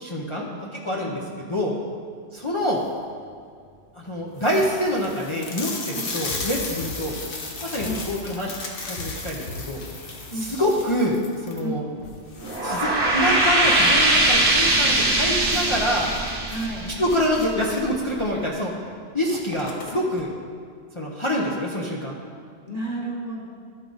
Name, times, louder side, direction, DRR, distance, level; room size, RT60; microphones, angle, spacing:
voice 1, 0.0-0.5 0.8-1.7 2.3-2.8 3.9-7.1 7.6-8.5 8.8-9.8 10.5-11.2 11.5-11.8 12.6-16.1 17.0-18.7 19.1-20.3 20.9-22.2, equal, 30° left, -4 dB, 0.7 m, -26 dB
sound 1, 2.5-3.0 3.6-3.7 4.0-4.1 4.4-13.9 14.3-14.4 14.7-14.8 15.5-17.7 18.7-18.8 19.1-20.2, left 3 dB, 55° left, 1.1 m, -36 dB
sound 2, 6.1-11.1 11.5-11.6, left 2 dB, 85° left, 1.3 m, -40 dB
sound 3, 12.4-17.6, right 1 dB, 65° right, 1.3 m, -21 dB
voice 2, 16.5-16.9 22.7-23.4, right 1 dB, 35° right, -2 dB, 1.2 m, -32 dB
12.5 x 4.8 x 3.9 m, 2.1 s
omnidirectional pair, 1.2 m